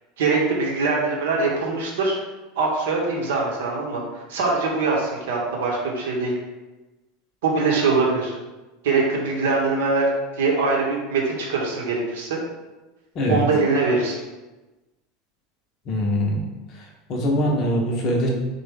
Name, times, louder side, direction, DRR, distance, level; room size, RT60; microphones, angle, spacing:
voice 1, 0.2-2.2 2.6-6.3 7.4-8.4 8.8-10.1 10.4-12.4 13.3-14.2, right 3 dB, 65° right, -2 dB, 0.7 m, -22 dB
voice 2, 15.9-16.4 17.1-18.3, equal, 45° left, 0 dB, 0.7 m, -22 dB
3.3 x 2.1 x 3.3 m, 1.1 s
figure-of-eight pair, 75°, 0 cm